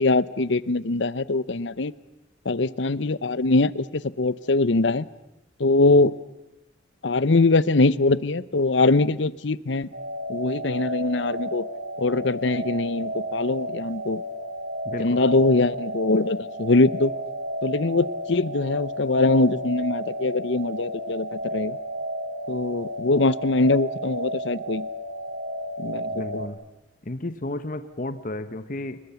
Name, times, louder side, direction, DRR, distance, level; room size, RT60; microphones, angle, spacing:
voice 1, 0.0-1.9 2.5-5.1 5.6-6.1 7.0-9.9 10.3-11.7 12.0-14.2 15.0-17.1 17.6-21.8 22.5-24.9 25.8-26.4, left 3 dB, 70° left, 18 dB, 0.8 m, -22 dB
sound 1, 9.9-26.5, right 1 dB, 70° right, 3.6 m, -32 dB
voice 2, 14.8-15.2 26.1-26.6 27.0-29.0, left 2 dB, 45° left, 11 dB, 1.1 m, -33 dB
30.0 x 21.5 x 7.1 m, 0.90 s
head